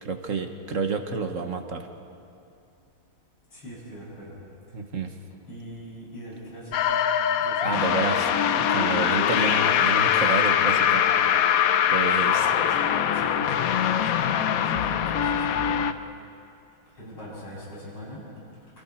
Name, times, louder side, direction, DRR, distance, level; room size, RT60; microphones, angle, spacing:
voice 1, 0.0-1.9 4.7-5.1 7.6-8.3 8.7-11.0 11.9-12.5, right 4 dB, 45° right, 6 dB, 1.3 m, -29 dB
voice 2, 3.5-4.3 5.5-7.1 7.4-8.1 12.1-15.9 17.0-18.3, equal, 90° left, -6 dB, 8.0 m, -41 dB
sound 1, 6.7-15.9, left 9 dB, 75° left, 0.8 m, -22 dB
29.5 x 25.5 x 4.4 m, 2.6 s
omnidirectional pair, 2.3 m